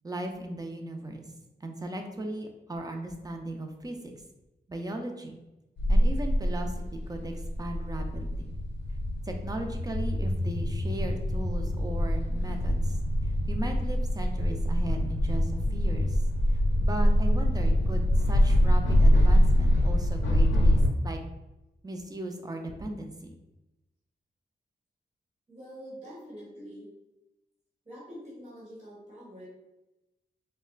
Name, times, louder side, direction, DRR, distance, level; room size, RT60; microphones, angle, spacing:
voice 1, 0.0-1.2 1.6-4.1 4.7-5.4 5.9-8.5 9.2-13.0 13.2-16.2 16.5-21.2 21.8-23.4, right 1 dB, 20° right, 3 dB, 0.5 m, -37 dB
sound 1, 5.8-20.9, equal, 85° left, 0.5 m, -25 dB
voice 2, 25.5-26.9 27.8-29.5, equal, 40° right, -7 dB, 1.4 m, -45 dB
4.1 x 2.2 x 2.4 m, 0.98 s
cardioid pair, 70°, 18 cm